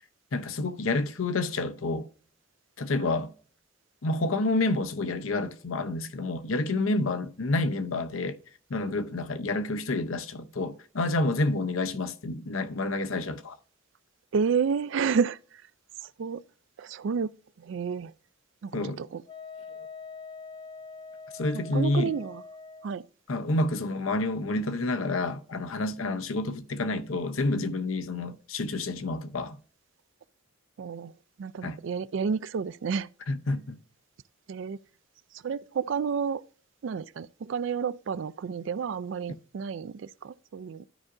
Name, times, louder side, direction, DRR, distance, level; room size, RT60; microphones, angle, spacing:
voice 1, 0.3-2.1 2.8-3.3 4.0-8.4 8.7-13.5 18.7-19.0 21.3-22.2 23.3-29.6 31.6-31.8 33.3-33.8, left 2 dB, 85° left, 0.8 m, -29 dB
voice 2, 14.3-15.4 16.0-16.4 16.8-17.3 17.6-18.1 18.6-19.2 21.7-22.4 22.8-23.0 30.8-31.1 31.4-33.1 34.5-34.8 35.3-36.4 36.8-40.8, right 6 dB, 65° right, 0.4 m, -30 dB
Wind instrument woodwind instrument, 19.3-22.9, left 4 dB, 25° left, 0.4 m, -44 dB
13.0 x 4.8 x 2.6 m
head